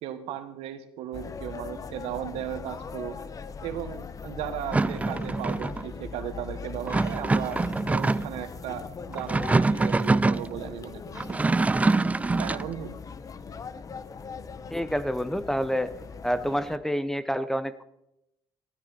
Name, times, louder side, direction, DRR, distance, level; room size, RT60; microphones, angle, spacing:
voice 1, 0.0-3.2 3.6-7.6 7.9-11.4 12.4-12.9, right 11 dB, 80° right, 9 dB, 1.5 m, -36 dB
sound 1, 1.1-16.8, left 5 dB, 35° left, 0.9 m, -40 dB
sound 2, 4.7-5.9 6.9-8.4 9.1-10.5 11.1-12.7, right 3 dB, 15° right, 0.4 m, -24 dB
voice 2, 14.7-15.9 16.2-17.8, equal, 5° left, 14 dB, 0.8 m, -28 dB
16.0 x 13.0 x 4.3 m, 0.83 s
cardioid pair, 95°, 10 cm